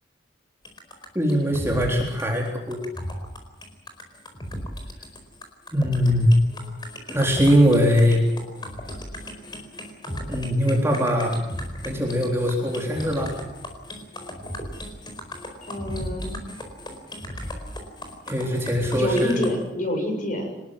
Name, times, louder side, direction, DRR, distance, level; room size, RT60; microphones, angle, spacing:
sound 1, 0.6-19.5, equal, 25° left, 4.6 m, -36 dB
voice 1, 1.2-2.8 5.7-6.4 7.1-8.2 10.3-11.4 11.8-13.4 18.3-19.4, equal, 15° right, -1 dB, 3.8 m, -21 dB
voice 2, 15.6-16.4 18.9-20.6, equal, 45° left, 4 dB, 7.2 m, -27 dB
25.0 x 20.5 x 7.5 m, 0.93 s
head